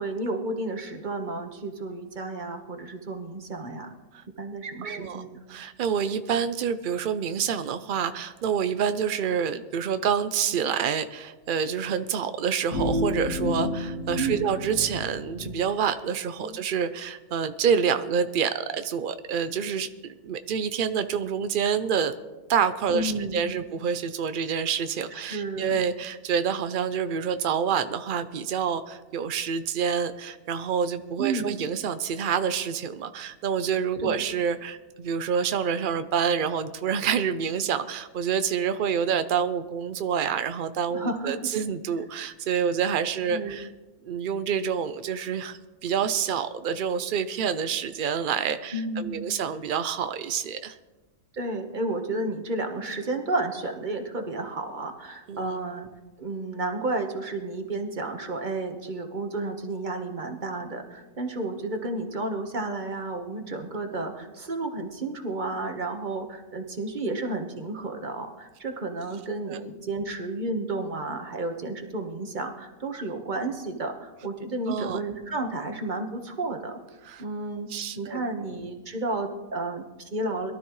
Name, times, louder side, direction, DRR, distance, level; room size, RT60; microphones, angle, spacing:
voice 1, 0.0-3.9 4.4-5.4 14.2-14.4 16.4-16.6 22.9-23.6 25.1-25.8 31.2-31.6 34.0-34.2 40.9-41.5 43.3-43.6 48.7-49.4 51.3-55.9 56.2-76.8 77.2-77.7 78.0-80.5, right 2 dB, 35° right, 5 dB, 1.3 m, -32 dB
voice 2, 4.8-5.2 5.5-22.1 22.5-43.7 44.0-50.8 55.3-55.5 69.5-69.6 74.7-75.0 77.0-77.2 77.7-78.2, right 7 dB, 80° right, 10 dB, 0.4 m, -27 dB
sound 1, 12.7-15.6, left 2 dB, 85° left, 1.9 m, -30 dB
22.0 x 13.0 x 3.1 m, 1.2 s
omnidirectional pair, 1.6 m